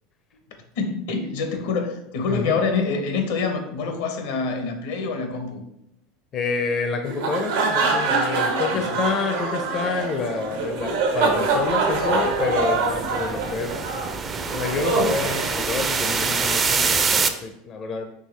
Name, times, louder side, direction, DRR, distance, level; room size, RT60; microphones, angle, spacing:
voice 1, 0.8-5.7 8.7-8.9, left 4 dB, 75° left, 5 dB, 0.9 m, -26 dB
voice 2, 6.3-14.0 14.5-18.1, left 4 dB, 35° left, 5 dB, 0.5 m, -28 dB
sound 1, 7.0-16.1, right 3 dB, 80° right, 0.9 m, -24 dB
sound 2, 11.3-17.3, right 5 dB, 25° right, 0.4 m, -25 dB
4.5 x 3.3 x 3.2 m, 0.81 s
supercardioid pair, 115°, 0 cm